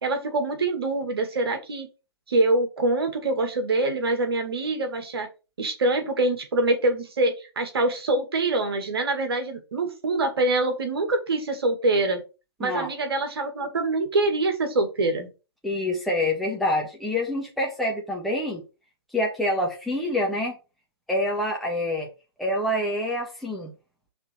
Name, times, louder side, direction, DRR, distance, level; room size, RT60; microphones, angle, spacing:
voice 1, 0.0-1.9 2.3-5.3 5.6-12.2 12.6-15.3, right 2 dB, 65° right, 5 dB, 2.0 m, -25 dB
voice 2, 15.6-18.6 19.1-20.5 21.1-22.1 22.4-23.7, left 1 dB, ahead, -2 dB, 1.5 m, -26 dB
5.8 x 3.9 x 4.6 m, 0.30 s
figure-of-eight pair, 120°, 14 cm